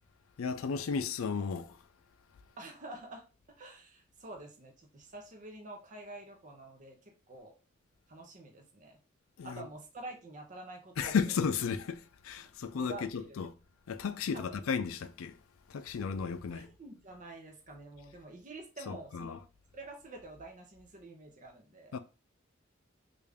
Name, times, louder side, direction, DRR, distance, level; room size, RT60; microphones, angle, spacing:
voice 1, 0.4-1.8 9.4-9.7 11.0-13.5 13.9-15.4 15.7-16.7 18.9-19.4 21.9-22.0, left 6 dB, 85° left, 0.4 m, -34 dB
voice 2, 2.6-3.2 3.6-7.0 7.3-7.5 8.1-9.0 9.4-11.1 12.7-13.4 14.3-14.7 16.5-19.4 19.7-21.9, right 2 dB, 40° right, 0.6 m, -48 dB
3.3 x 2.5 x 3.4 m
head